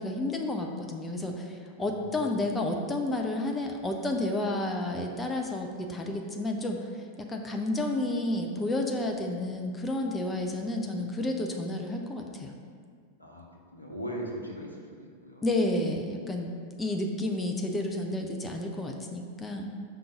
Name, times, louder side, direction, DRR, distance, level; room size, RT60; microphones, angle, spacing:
voice 1, 0.0-7.0 7.3-12.5 15.4-16.5 16.8-19.7, left 1 dB, 15° left, 2 dB, 0.6 m, -31 dB
voice 2, 1.8-2.2 13.2-15.4, equal, 90° left, -2 dB, 0.9 m, -40 dB
5.2 x 3.8 x 5.7 m, 2.1 s
figure-of-eight pair, 90°, 0 cm